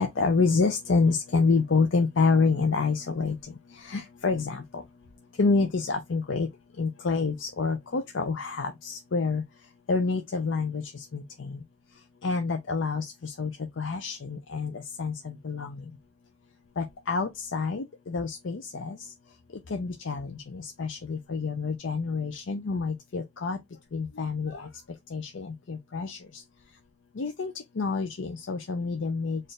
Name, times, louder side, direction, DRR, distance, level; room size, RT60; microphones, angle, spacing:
voice 1, 0.0-3.4 3.8-4.8 5.4-6.5 6.8-9.4 9.9-11.6 12.2-13.5 13.8-15.8 16.8-19.0 19.7-23.6 23.9-24.7 25.1-26.2 27.2-29.4, left 4 dB, 75° left, 0.6 m, -28 dB
4.2 x 2.6 x 3.2 m
head